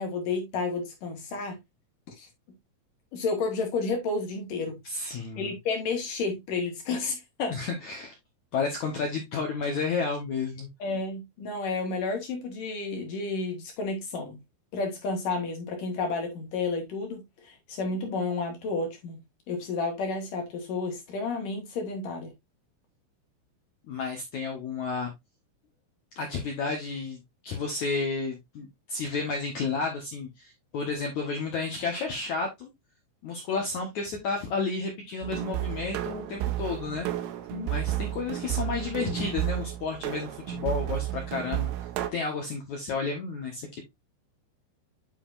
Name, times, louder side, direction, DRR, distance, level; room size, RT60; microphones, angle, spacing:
voice 1, 0.0-1.6 2.2-2.3 3.1-4.8 5.4-7.6 10.8-14.4 14.7-19.2 19.5-22.3 37.5-37.7, left 3 dB, 60° left, 2.4 m, -31 dB
voice 2, 4.8-5.5 7.5-8.1 8.5-10.7 23.9-25.1 26.1-32.7 33.2-37.1 37.6-43.8, left 4 dB, 80° left, 1.6 m, -32 dB
sound 1, 35.2-42.1, right 14 dB, 80° right, 3.4 m, -32 dB
9.6 x 5.7 x 2.5 m
omnidirectional pair, 5.8 m